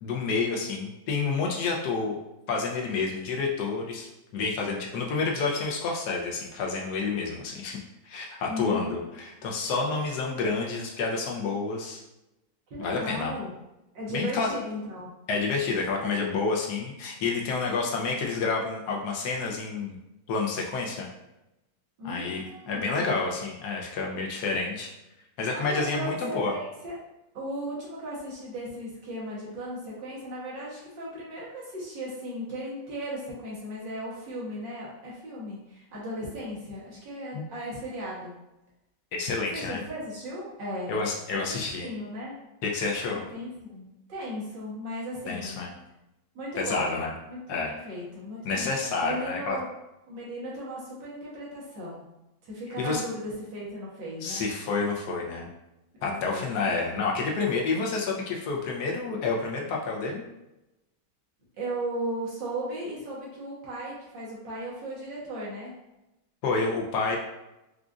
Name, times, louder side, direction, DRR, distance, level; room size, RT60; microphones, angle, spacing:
voice 1, 0.0-2.2 2.5-7.8 8.0-12.0 12.8-13.3 14.1-14.5 15.3-20.0 20.3-21.1 22.0-24.9 25.4-26.5 37.3-37.4 39.1-39.8 40.9-41.9 42.6-43.2 45.3-45.7 46.6-47.1 47.5-47.7 48.4-49.6 52.8-53.0 54.2-55.5 56.0-60.2 66.4-67.2, left 4 dB, 70° left, -1 dB, 1.0 m, -29 dB
voice 2, 8.5-9.0 12.7-13.5 13.9-15.1 22.0-23.2 25.5-27.0 27.3-38.3 39.5-41.0 41.3-42.4 43.1-45.7 46.3-47.0 47.3-48.6 49.0-49.7 50.1-52.0 52.4-54.5 56.0-56.4 61.6-65.7, equal, 65° right, -6 dB, 1.7 m, -36 dB
4.9 x 2.5 x 2.4 m, 0.94 s
omnidirectional pair, 2.2 m